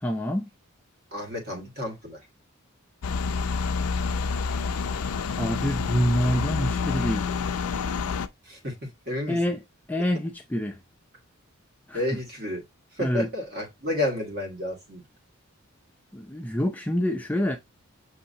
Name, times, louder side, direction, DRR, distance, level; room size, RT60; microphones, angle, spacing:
voice 1, 0.0-0.5 5.4-7.3 9.3-9.6 9.9-10.8 11.9-12.0 13.0-13.3 16.1-17.6, equal, 5° left, 0.3 m, -26 dB
voice 2, 1.1-2.2 8.5-9.4 11.9-12.6 13.0-15.0, left 1 dB, 45° right, 1.5 m, -31 dB
sound 1, 3.0-8.3, left 5 dB, 80° left, 0.4 m, -28 dB
6.3 x 2.8 x 2.7 m
head